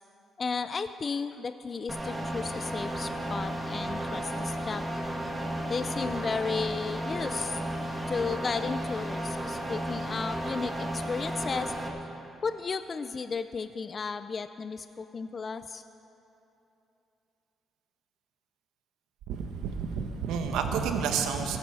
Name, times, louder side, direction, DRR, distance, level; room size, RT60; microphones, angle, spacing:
voice 1, 0.4-4.8 5.7-7.6 8.1-11.7 12.4-15.8, left 5 dB, 40° left, 11 dB, 0.4 m, -34 dB
sound 1, 1.9-11.9, right 1 dB, 10° right, 1.9 m, -33 dB
voice 2, 19.3-21.6, right 6 dB, 90° right, 6 dB, 1.1 m, -30 dB
16.5 x 9.1 x 6.2 m, 2.9 s
cardioid pair, 90°, 0 cm